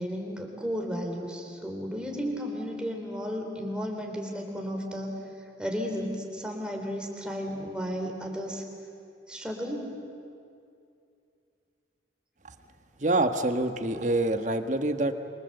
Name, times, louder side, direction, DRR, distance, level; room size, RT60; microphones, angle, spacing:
voice 1, 0.0-5.2 5.6-8.6 9.3-9.9, equal, 5° right, 1 dB, 3.5 m, -33 dB
voice 2, 13.0-15.1, right 2 dB, 40° right, 8 dB, 1.4 m, -26 dB
27.5 x 24.0 x 7.9 m, 2.5 s
head